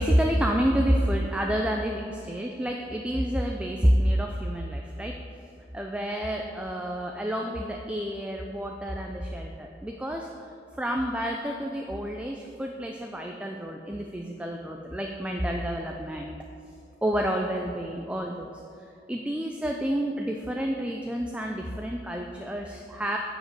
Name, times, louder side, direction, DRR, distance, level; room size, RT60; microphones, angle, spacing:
voice 1, 0.0-5.1 5.7-16.4 17.0-18.5 19.1-23.2, equal, 5° right, 1 dB, 0.4 m, -29 dB
9.0 x 5.1 x 7.6 m, 2.6 s
head